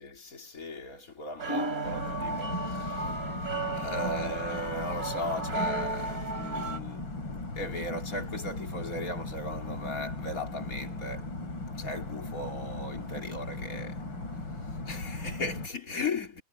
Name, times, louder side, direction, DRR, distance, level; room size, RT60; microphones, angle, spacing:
voice 1, 0.0-3.2 3.7-11.3 11.7-14.0 14.6-16.4, left 2 dB, 45° left, 3.5 m, -37 dB
sound 1, 1.4-6.8, right 2 dB, 50° right, 4.3 m, -34 dB
sound 2, 1.8-15.7, left 2 dB, 90° left, 4.7 m, -38 dB
omnidirectional pair, 2.0 m